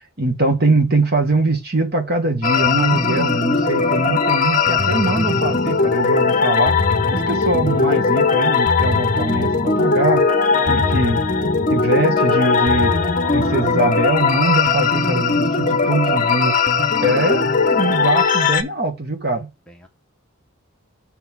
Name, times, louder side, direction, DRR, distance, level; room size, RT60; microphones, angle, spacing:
voice 1, 0.2-6.8 7.1-10.2 10.7-13.0 13.3-16.6 17.0-19.5, right 2 dB, 45° right, 1.6 m, -22 dB
sound 1, 2.4-18.6, left 4 dB, 40° left, 0.8 m, -18 dB
voice 2, 3.8-4.1 10.5-11.0 19.7-19.9, left 1 dB, 5° left, 1.0 m, -43 dB
6.6 x 3.8 x 6.1 m
head